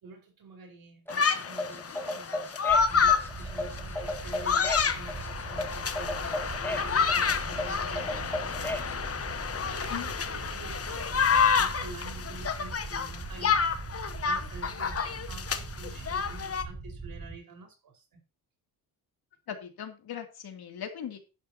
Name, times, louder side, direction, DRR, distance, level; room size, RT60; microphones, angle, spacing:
voice 1, 0.0-2.5 2.9-8.8 9.5-13.8 14.2-18.2, right 3 dB, 60° right, 3 dB, 4.9 m, -48 dB
sound 1, 1.1-16.6, left 6 dB, 35° left, 1.1 m, -29 dB
sound 2, 1.1-8.9, left 1 dB, 5° left, 2.3 m, -35 dB
sound 3, 2.7-17.4, right 3 dB, 20° right, 2.3 m, -41 dB
voice 2, 19.5-21.2, left 8 dB, 70° left, 4 dB, 2.9 m, -39 dB
11.5 x 11.0 x 2.9 m, 0.30 s
cardioid pair, 125°, 39 cm